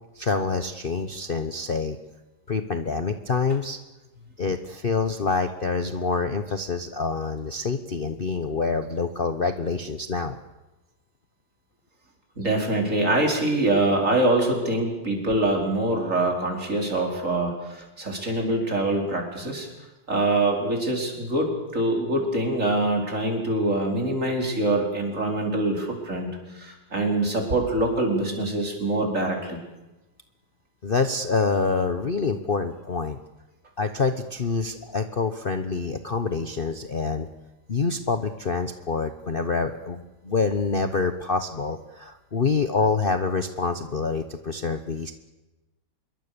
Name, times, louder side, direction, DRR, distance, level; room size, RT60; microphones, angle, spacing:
voice 1, 0.2-2.0 2.5-3.8 4.4-10.4 30.8-33.2 33.8-37.3 37.7-45.1, left 4 dB, 35° left, 8 dB, 1.0 m, -26 dB
voice 2, 12.4-19.7 20.1-29.6, right 2 dB, 45° right, 1 dB, 5.2 m, -24 dB
26.5 x 22.5 x 6.9 m, 1.0 s
omnidirectional pair, 1.9 m